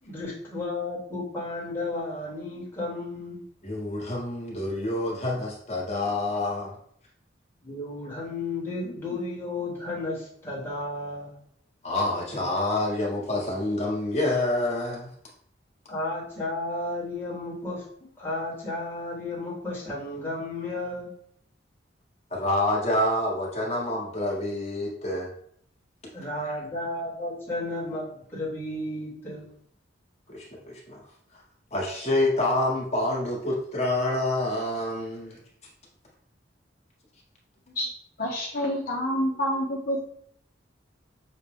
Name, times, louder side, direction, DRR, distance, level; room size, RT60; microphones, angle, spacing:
voice 1, 0.0-3.4 7.6-11.3 15.9-17.9 18.2-21.1 26.1-29.4, left 2 dB, 10° left, -7 dB, 1.3 m, -33 dB
voice 2, 3.6-6.7 11.8-15.1 22.3-25.3 26.4-26.6 30.3-31.1 31.3-31.4 31.7-35.4, left 1 dB, 35° left, -3 dB, 1.4 m, -27 dB
voice 3, 38.2-40.1, equal, 55° left, -3 dB, 0.7 m, -27 dB
6.4 x 2.2 x 3.4 m, 0.66 s
head